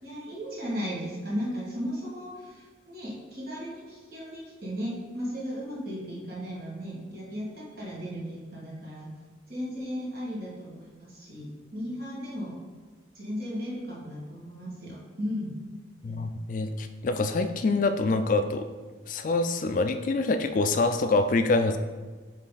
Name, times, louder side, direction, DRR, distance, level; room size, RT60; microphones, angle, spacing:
voice 1, 0.0-9.1 9.5-12.6 13.2-15.6 16.0-16.3, equal, 55° right, -5 dB, 1.8 m, -36 dB
voice 2, 16.0-18.7 19.1-21.8, left 3 dB, 45° left, 9 dB, 0.3 m, -25 dB
7.6 x 3.2 x 4.0 m, 1.4 s
head